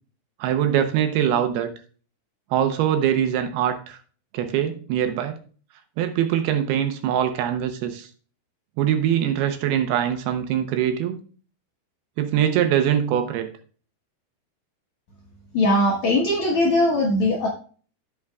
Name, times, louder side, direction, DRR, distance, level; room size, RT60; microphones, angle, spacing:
voice 1, 0.4-1.7 2.5-4.0 4.3-5.4 6.0-8.1 8.8-11.2 12.2-13.5, right 10 dB, 75° right, 7 dB, 2.6 m, -23 dB
voice 2, 15.5-17.5, left 1 dB, 65° left, -2 dB, 1.8 m, -20 dB
15.5 x 5.5 x 2.3 m, 0.41 s
omnidirectional pair, 4.8 m